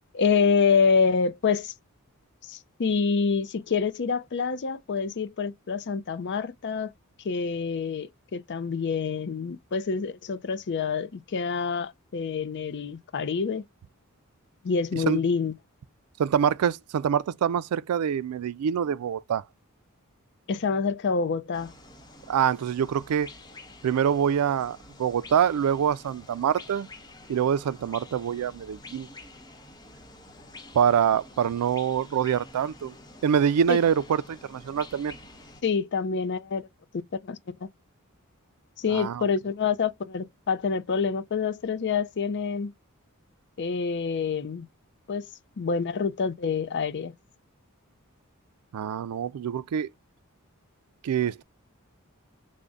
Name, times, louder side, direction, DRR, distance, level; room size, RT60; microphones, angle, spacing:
voice 1, 0.1-1.7 2.4-6.9 7.2-13.6 14.6-15.5 20.5-21.7 33.7-33.8 35.6-36.7 36.9-37.7 38.8-42.7 43.6-44.7 45.1-45.3 45.6-47.1, left 5 dB, 50° left, 0.5 m, -27 dB
voice 2, 16.2-19.4 22.3-23.3 23.8-26.9 27.3-29.1 30.7-32.9 33.2-35.1 38.9-39.2 48.7-49.9 51.0-51.4, right 8 dB, 85° right, 0.3 m, -25 dB
sound 1, 21.5-35.6, left 2 dB, 20° left, 0.7 m, -48 dB
3.6 x 2.1 x 3.8 m
head